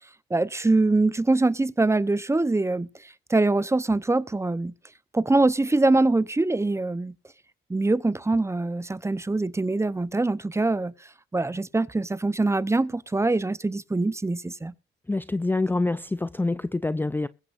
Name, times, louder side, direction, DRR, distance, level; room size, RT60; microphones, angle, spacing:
voice 1, 0.3-2.9 3.3-4.7 5.1-7.1 7.7-10.9 11.3-14.7, right 2 dB, 15° right, 0.8 m, -23 dB
voice 2, 15.1-17.3, left 2 dB, 10° left, 0.5 m, -26 dB
22.0 x 8.5 x 2.6 m
cardioid pair, 90°, 20 cm